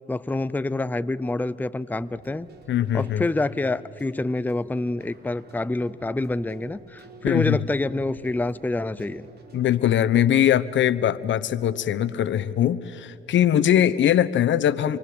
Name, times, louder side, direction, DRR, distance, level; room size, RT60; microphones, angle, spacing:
voice 1, 0.1-2.5 2.9-9.3, left 2 dB, 10° left, 15 dB, 0.6 m, -27 dB
Keyboard (musical), 2.0-10.0, right 4 dB, 55° right, 4.6 m, -49 dB
voice 2, 2.7-3.3 7.2-7.6 9.5-15.0, left 10 dB, 70° left, 16 dB, 1.0 m, -21 dB
28.0 x 23.5 x 7.9 m, 2.6 s
cardioid pair, 90°, 20 cm